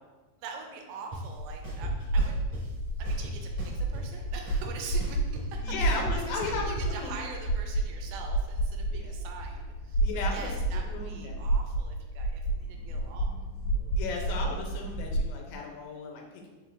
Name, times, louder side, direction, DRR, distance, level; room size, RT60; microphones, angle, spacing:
voice 1, 0.4-13.5, right 5 dB, 80° right, 3 dB, 2.3 m, -44 dB
sound 1, 1.1-1.2 1.6-2.6 3.1-4.2 4.5-6.9, right 2 dB, 50° right, 1.8 m, -39 dB
sound 2, 1.4-15.4, right 2 dB, 60° left, 1.7 m, -31 dB
voice 2, 5.6-7.2 8.9-9.2 10.0-11.3 14.0-16.5, left 4 dB, 80° left, 0 dB, 2.4 m, -36 dB
4.9 x 4.5 x 2.4 m, 1.3 s
omnidirectional pair, 4.4 m